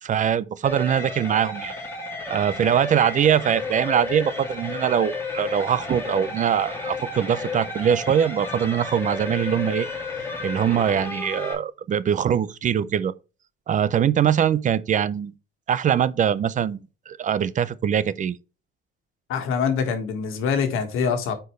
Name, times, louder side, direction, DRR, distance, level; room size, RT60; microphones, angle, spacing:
voice 1, 0.0-1.7 2.3-9.9 10.4-13.1 13.7-15.3 15.7-18.4, right 9 dB, 40° right, 0.5 m, -22 dB
sound 1, 0.6-11.5, left 3 dB, 10° left, 2.6 m, -32 dB
voice 2, 19.3-21.4, left 6 dB, 85° left, 1.7 m, -24 dB
9.2 x 4.5 x 3.2 m
cardioid pair, 145°, 21 cm